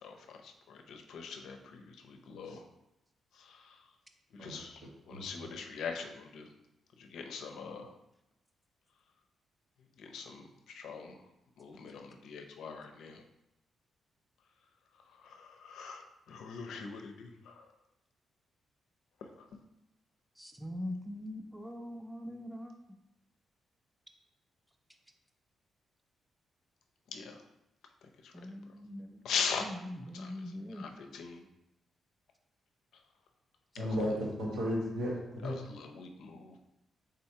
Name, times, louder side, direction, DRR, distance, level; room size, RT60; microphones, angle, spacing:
voice 1, 0.0-2.6 3.4-3.7 4.3-4.8 5.1-6.5 7.0-7.9 10.0-11.2 11.6-13.2 15.2-17.6 19.2-19.6 27.1-27.4 28.2-28.3 29.2-29.7 30.1-30.3 30.7-31.4 33.8-33.9 35.4-36.6, left 5 dB, 80° left, 4 dB, 0.5 m, -41 dB
voice 2, 20.4-22.7 28.3-29.2 29.6-30.8, left 1 dB, 5° right, 5 dB, 0.4 m, -42 dB
voice 3, 33.8-35.6, equal, 85° right, -5 dB, 1.5 m, -34 dB
4.4 x 3.8 x 2.8 m, 0.87 s
cardioid pair, 125°, 0 cm